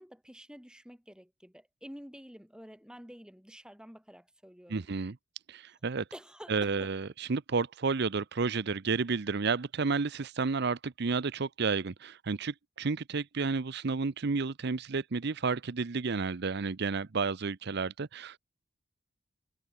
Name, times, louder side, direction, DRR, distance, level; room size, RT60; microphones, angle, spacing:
voice 1, 0.0-4.9 6.1-6.9, equal, 5° right, 4.3 m, -49 dB
voice 2, 4.7-5.2 5.5-6.0 6.5-18.4, right 4 dB, 60° right, 0.7 m, -31 dB
head